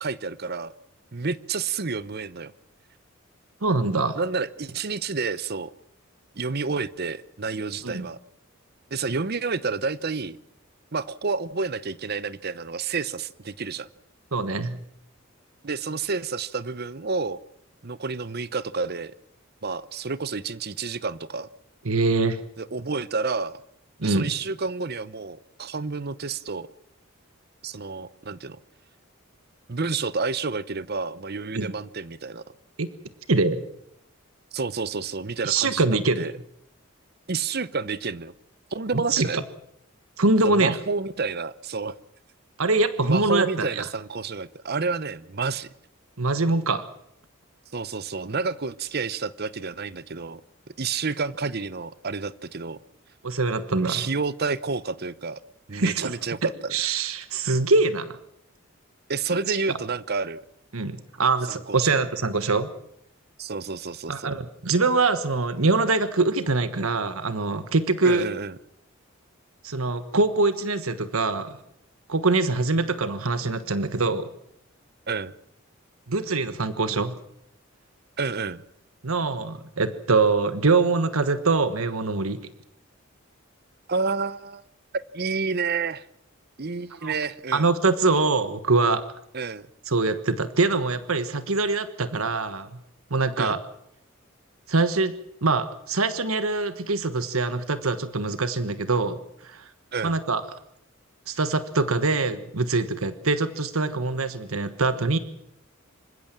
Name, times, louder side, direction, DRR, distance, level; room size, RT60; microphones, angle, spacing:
voice 1, 0.0-0.7 1.1-2.5 4.2-5.7 6.4-8.2 8.9-10.4 10.9-13.9 15.6-17.4 17.8-19.1 19.6-21.5 22.6-23.6 24.0-26.7 27.6-28.6 29.7-32.4 34.5-36.3 37.3-38.3 38.7-39.4 40.4-41.9 43.0-45.7 47.7-50.4 50.8-52.8 53.8-55.4 55.7-56.7 59.1-60.4 61.5-62.0 63.4-64.3 68.0-68.6 75.1-75.3 78.2-78.6 83.9-84.6 85.1-86.0 86.6-87.7 89.3-89.7 93.4-93.6 99.9-100.2, right 4 dB, 50° right, 17 dB, 0.8 m, -29 dB
voice 2, 3.6-4.2 7.8-8.1 14.3-14.8 21.8-22.4 24.0-24.3 31.5-31.7 32.8-32.9 33.3-33.6 35.4-36.3 38.9-39.4 40.2-40.8 42.6-43.8 46.2-46.8 53.2-54.0 55.7-56.1 56.7-58.2 59.5-59.6 60.7-62.7 64.1-68.3 69.6-71.5 72.1-74.3 76.1-77.1 79.0-82.4 87.0-87.1 87.5-89.0 89.9-92.8 93.1-93.6 94.7-95.1 95.4-99.6 100.0-100.4 101.3-105.2, right 3 dB, 90° right, 11 dB, 1.4 m, -24 dB
26.5 x 16.0 x 7.5 m, 0.75 s
head